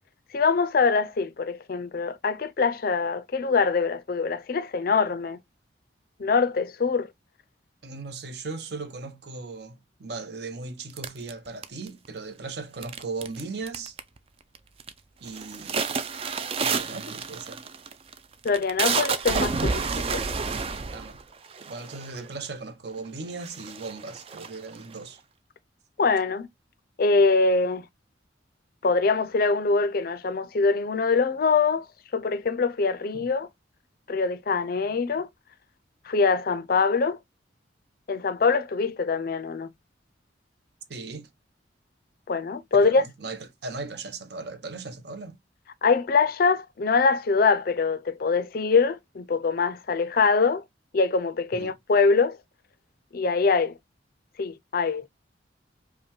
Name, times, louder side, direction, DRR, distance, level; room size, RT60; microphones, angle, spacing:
voice 1, 0.3-5.4 6.2-7.1 18.4-20.2 26.0-26.5 27.0-27.8 28.8-31.8 32.1-33.5 34.1-35.3 36.1-37.2 38.1-39.7 42.3-43.1 45.8-50.6 50.9-52.4 53.1-53.8 54.4-55.1, left 4 dB, 50° left, 0.4 m, -23 dB
voice 2, 7.8-14.0 15.2-15.8 16.6-17.6 19.8-20.2 20.9-21.2 21.7-25.2 33.1-33.3 40.9-41.3 42.7-45.4 51.5-51.7, right 3 dB, 55° right, 0.7 m, -38 dB
sound 1, 11.0-12.1 12.8-13.4 13.7-14.2 14.6-14.9 15.3-22.3 23.0-23.1 23.4-25.0, right 5 dB, 30° right, 0.3 m, -30 dB
5.1 x 2.2 x 3.0 m
head